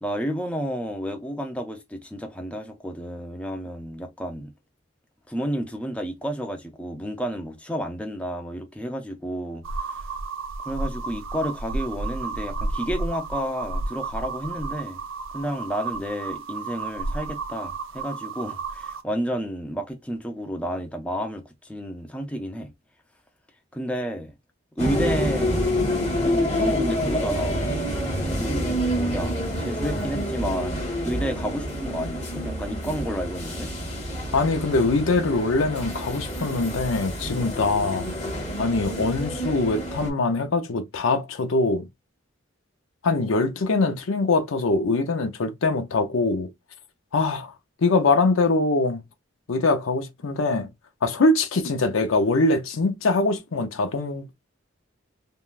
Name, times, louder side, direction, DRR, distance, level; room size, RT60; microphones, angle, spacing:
voice 1, 0.0-4.5 5.3-10.0 10.6-15.0 15.3-22.7 23.7-24.3 24.8-25.6 26.2-27.6 28.4-33.7, equal, 5° left, 0.5 m, -31 dB
sound 1, 9.6-19.0, right 3 dB, 75° right, 0.5 m, -32 dB
sound 2, 24.8-40.1, equal, 35° left, 1.5 m, -28 dB
voice 2, 34.3-38.1 38.6-41.9 43.0-46.5 47.1-47.5 47.8-49.0 49.5-50.7 51.0-54.3, left 3 dB, 80° left, 0.6 m, -23 dB
3.5 x 2.2 x 2.4 m
head